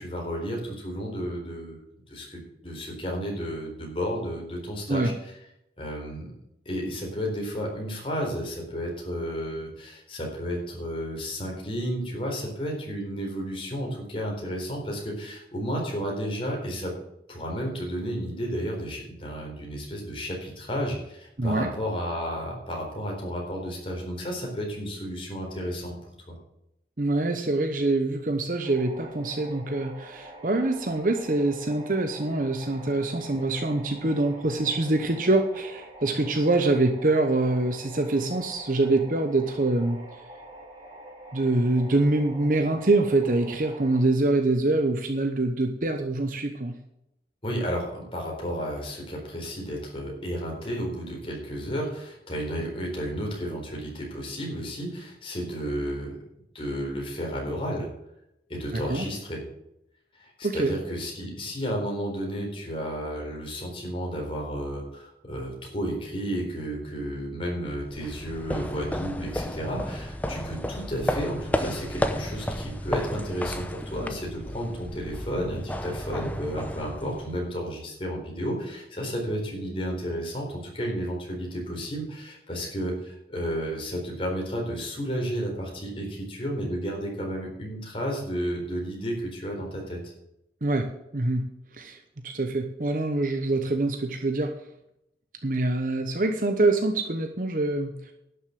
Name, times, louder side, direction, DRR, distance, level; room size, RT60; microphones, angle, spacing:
voice 1, 0.0-1.8 2.1-5.1 5.8-6.3 6.7-16.9 17.3-25.9 26.3-26.4 47.4-56.1 56.5-57.9 58.5-59.4 60.1-90.1, equal, 30° left, -1 dB, 4.0 m, -32 dB
voice 2, 21.4-21.7 27.0-40.0 41.3-46.7 58.7-59.0 60.4-60.7 90.6-90.9 91.1-91.4 91.8-92.0 92.2-94.5 95.4-98.1, right 2 dB, 50° right, 5 dB, 0.9 m, -25 dB
sound 1, 28.6-44.0, right 1 dB, 20° right, 2.9 m, -46 dB
sound 2, 67.9-77.5, equal, 10° left, 0.7 m, -32 dB
11.5 x 6.9 x 7.7 m, 0.82 s
head